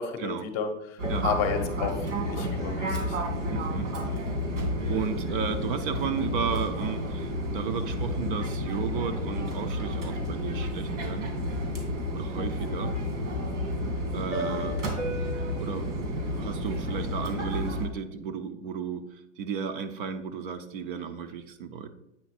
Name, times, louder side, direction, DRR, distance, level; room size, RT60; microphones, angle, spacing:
voice 1, 0.0-2.0 2.2-3.2, left 6 dB, 30° left, 6 dB, 0.8 m, -32 dB
Fixed-wing aircraft airplane, 1.0-17.9, equal, 85° right, 2.5 m, -31 dB
voice 2, 3.5-3.9 4.9-11.3 12.1-12.9 14.1-14.8 15.6-15.9 16.3-21.9, right 6 dB, 45° right, 8 dB, 0.7 m, -33 dB
8.5 x 4.0 x 4.2 m, 0.85 s
hypercardioid pair, 150°, 36 cm